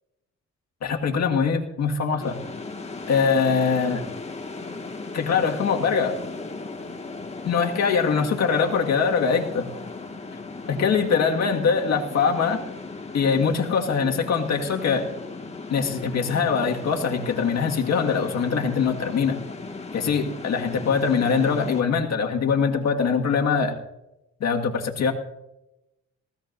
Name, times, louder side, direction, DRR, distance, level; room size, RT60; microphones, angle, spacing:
voice 1, 0.8-2.4 3.1-4.0 5.1-6.2 7.5-9.7 10.7-12.6 13.1-15.1 15.7-19.4 19.9-23.8 24.4-25.1, left 5 dB, 60° left, 2 dB, 1.8 m, -23 dB
sound 1, 2.2-21.8, left 3 dB, 20° left, 1.8 m, -37 dB
19.5 x 16.0 x 2.6 m, 0.92 s
cardioid pair, 90°, 30 cm